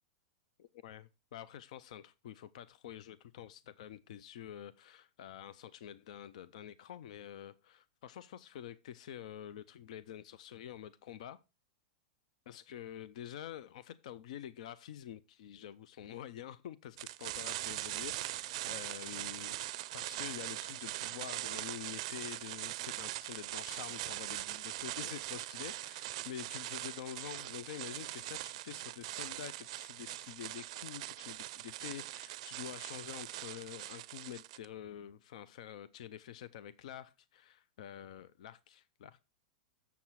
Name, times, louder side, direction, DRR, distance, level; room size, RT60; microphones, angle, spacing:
voice 1, 0.6-11.4 12.5-19.6 19.9-39.2, left 10 dB, 70° left, 0.5 m, -47 dB
sound 1, 17.0-34.7, right 17 dB, 60° right, 0.4 m, -41 dB
7.2 x 7.0 x 4.6 m
supercardioid pair, 145°, 4 cm